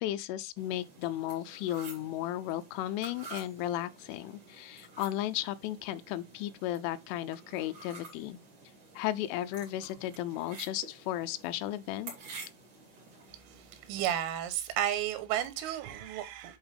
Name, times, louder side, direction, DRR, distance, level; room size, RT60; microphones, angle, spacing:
voice 1, 0.0-8.4 9.0-12.1, left 13 dB, 90° left, 3.1 m, -35 dB
sound 1, 0.6-14.1, right 4 dB, 45° right, 3.9 m, -50 dB
voice 2, 13.9-16.6, right 11 dB, 90° right, 3.6 m, -32 dB
10.5 x 4.3 x 3.3 m
omnidirectional pair, 5.6 m